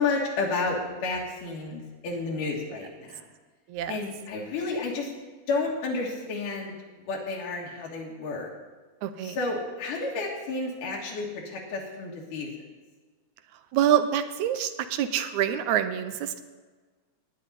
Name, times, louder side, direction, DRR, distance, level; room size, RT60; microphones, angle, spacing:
voice 1, 0.0-3.2 3.9-5.1 5.5-8.5 9.2-12.5, left 3 dB, 90° left, -2 dB, 3.2 m, -31 dB
voice 2, 3.7-4.0 9.0-9.4 13.7-16.4, right 10 dB, 75° right, 10 dB, 2.0 m, -26 dB
18.0 x 9.5 x 4.1 m, 1.4 s
omnidirectional pair, 3.6 m